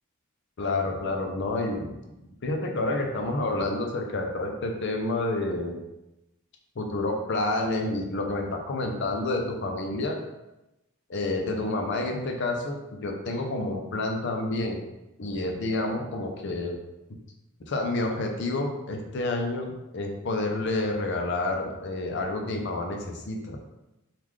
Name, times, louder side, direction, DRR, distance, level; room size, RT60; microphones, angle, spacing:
voice 1, 0.6-2.0 2.4-5.8 6.8-10.2 11.1-14.8 15.2-16.8 17.7-23.6, left 2 dB, 55° left, 2 dB, 0.5 m, -29 dB
3.7 x 2.4 x 3.1 m, 0.94 s
head